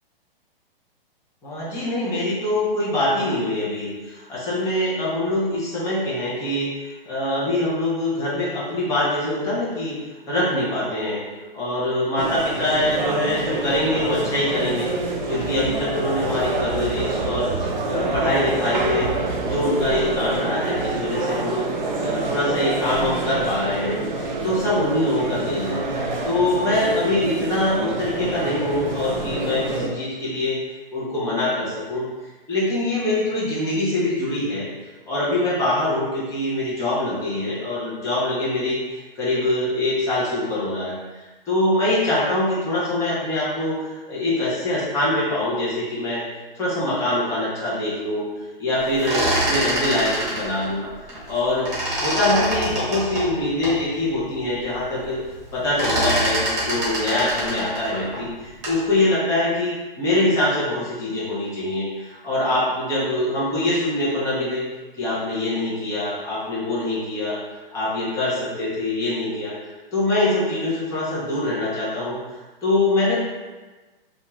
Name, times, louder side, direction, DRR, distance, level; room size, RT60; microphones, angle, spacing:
voice 1, 1.4-9.9 10.3-11.2 11.5-14.9 15.3-19.1 19.4-25.8 26.2-30.6 30.9-32.0 32.5-34.7 35.1-46.2 46.5-48.3 48.6-50.8 51.3-51.7 52.0-55.2 55.5-64.6 65.0-67.4 67.7-69.5 69.9-72.2 72.6-73.2, left 1 dB, 10° left, -8 dB, 0.6 m, -24 dB
sound 1, 12.2-29.9, right 3 dB, 50° right, 0.5 m, -27 dB
sound 2, 48.8-51.4 51.6-53.8 54.3-54.4 54.6-55.1 55.3-58.9, right 1 dB, 25° right, 1.0 m, -25 dB
2.4 x 2.3 x 3.0 m, 1.2 s
hypercardioid pair, 140°, 29 cm